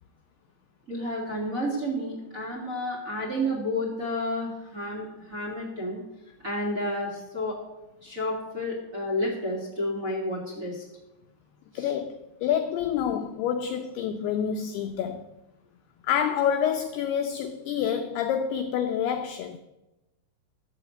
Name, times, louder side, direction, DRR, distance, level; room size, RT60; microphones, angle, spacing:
voice 1, 0.9-6.0 6.4-7.6 8.0-10.8 11.7-11.9, left 1 dB, 25° right, 2.2 m, -31 dB
voice 2, 11.7-15.3 16.0-19.6, left 8 dB, 80° left, 2.3 m, -28 dB
11.5 x 7.8 x 7.9 m
omnidirectional pair, 5.4 m